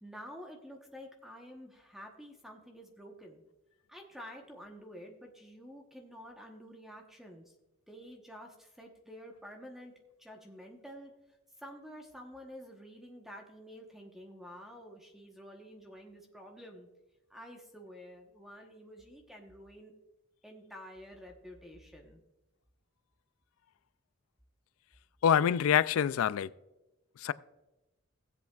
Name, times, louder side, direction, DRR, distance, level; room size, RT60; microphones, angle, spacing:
voice 1, 0.0-3.4 3.9-7.5 7.9-9.9 10.2-11.1 11.6-16.9 17.3-19.9 20.4-22.2, equal, ahead, 0.9 m, -49 dB
voice 2, 25.2-26.5 27.2-27.3, left 8 dB, 80° left, 0.3 m, -26 dB
16.5 x 8.1 x 2.3 m
head